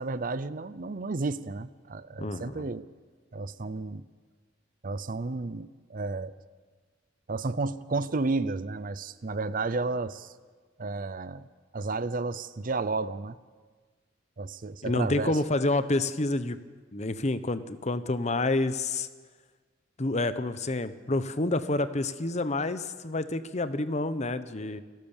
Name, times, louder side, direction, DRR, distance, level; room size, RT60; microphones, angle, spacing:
voice 1, 0.0-2.9 3.3-4.0 4.8-6.3 7.3-10.3 10.8-11.5 11.7-13.4 14.4-15.4, right 3 dB, 45° right, 15 dB, 0.6 m, -32 dB
voice 2, 2.2-2.7 14.8-16.6 16.9-19.1 20.0-24.8, left 2 dB, 35° left, 12 dB, 0.9 m, -28 dB
29.5 x 12.0 x 7.3 m, 1.5 s
head